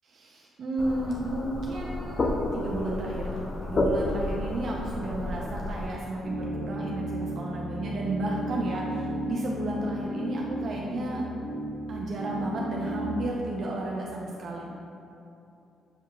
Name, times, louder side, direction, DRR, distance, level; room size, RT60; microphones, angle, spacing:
voice 1, 0.0-11.2 11.9-14.6, right 1 dB, 60° right, -3 dB, 0.5 m, -33 dB
sound 1, 0.8-5.9, left 2 dB, 35° left, 0.4 m, -31 dB
sound 2, 6.2-13.3, equal, 80° left, 1.1 m, -34 dB
7.0 x 2.8 x 2.3 m, 2.8 s
cardioid pair, 90°, 0 cm